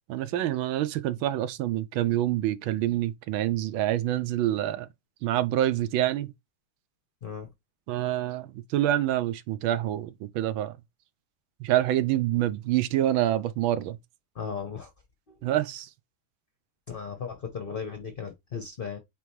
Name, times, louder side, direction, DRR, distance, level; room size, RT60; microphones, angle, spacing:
voice 1, 0.1-4.9 5.2-6.3 7.9-10.8 11.6-14.0 15.4-15.9, right 13 dB, 90° right, 1.5 m, -26 dB
voice 2, 14.4-14.9 16.9-19.0, left 6 dB, 50° left, 0.6 m, -36 dB
8.7 x 3.5 x 3.2 m
omnidirectional pair, 2.2 m